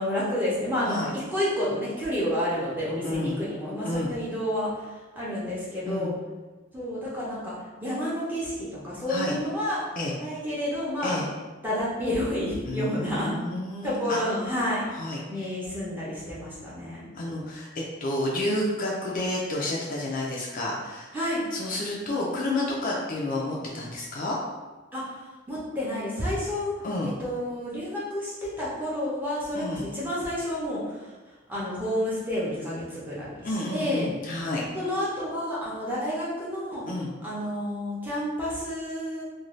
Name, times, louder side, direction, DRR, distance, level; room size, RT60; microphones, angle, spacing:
voice 1, 0.0-4.9 5.1-6.1 6.7-7.5 7.8-9.8 10.2-11.2 11.6-13.3 13.8-14.9 15.3-17.1 21.1-21.4 24.9-25.1 25.5-26.7 27.0-28.3 28.6-31.0 31.5-34.1 34.7-36.8 37.2-39.2, equal, 10° right, -8 dB, 0.7 m, -30 dB
voice 2, 3.0-3.4 3.8-4.1 5.9-6.1 9.1-9.3 10.0-10.2 11.0-11.3 12.6-14.2 14.9-15.5 17.1-21.1 21.5-24.4 26.8-27.1 29.5-29.9 33.4-34.7 36.9-37.1, left 1 dB, 45° left, -3 dB, 0.4 m, -30 dB
2.6 x 2.2 x 3.0 m, 1.2 s
head